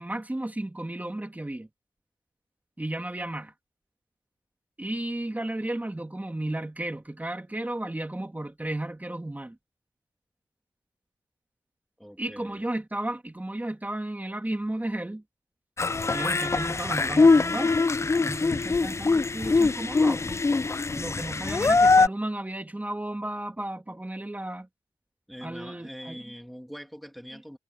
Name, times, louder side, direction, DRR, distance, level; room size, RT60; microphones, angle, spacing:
voice 1, 0.0-1.7 2.8-3.5 4.8-9.6 12.2-15.2 16.1-20.4 21.0-24.7 25.4-26.2 27.3-27.4, right 1 dB, 20° right, 2.6 m, -34 dB
voice 2, 12.0-12.6 25.3-27.6, equal, ahead, 2.7 m, -43 dB
sound 1, 15.8-22.1, left 3 dB, 35° left, 0.4 m, -22 dB
wide cardioid pair, 70°, 8 cm